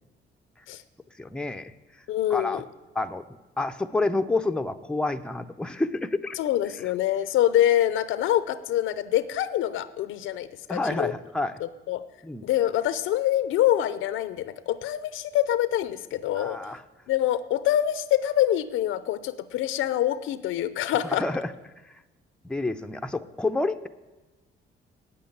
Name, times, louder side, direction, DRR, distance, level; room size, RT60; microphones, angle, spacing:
voice 1, 1.2-1.7 2.3-2.6 3.0-3.3 3.6-6.4 10.7-11.5 12.2-12.5 16.3-16.8 21.1-21.5 22.4-23.9, left 2 dB, 5° left, 8 dB, 0.5 m, -28 dB
voice 2, 2.1-2.6 6.4-11.1 11.6-12.0 12.4-16.6 17.1-21.2, left 12 dB, 85° left, 14 dB, 0.6 m, -25 dB
8.6 x 7.7 x 8.6 m, 1.1 s
cardioid pair, 90°, 20 cm